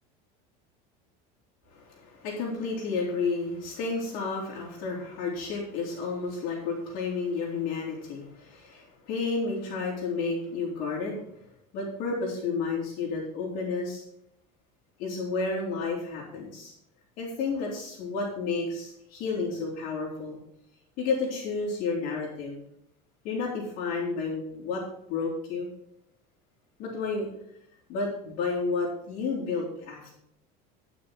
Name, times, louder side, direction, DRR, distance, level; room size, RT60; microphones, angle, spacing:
voice 1, 1.7-11.2 11.7-14.0 15.0-16.7 17.2-20.4 21.0-22.6 23.2-24.8 25.1-25.7 26.8-27.3 27.9-30.1, left 4 dB, 45° left, -7 dB, 3.1 m, -31 dB
11.0 x 6.1 x 6.2 m, 0.76 s
cardioid pair, 180°, 19 cm